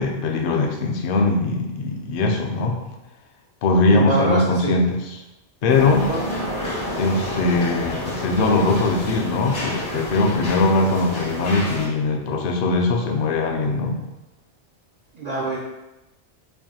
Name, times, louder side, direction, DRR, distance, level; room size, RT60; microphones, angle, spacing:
voice 1, 0.0-2.7 3.6-5.2 5.6-6.1 6.9-14.0, left 3 dB, 60° left, 2 dB, 0.7 m, -21 dB
voice 2, 3.9-4.7 6.1-6.2 15.1-15.6, right 2 dB, 50° right, -4 dB, 0.5 m, -24 dB
sound 1, 5.7-11.9, left 1 dB, 80° left, 1.4 m, -29 dB
4.5 x 2.7 x 2.8 m, 0.98 s
omnidirectional pair, 1.2 m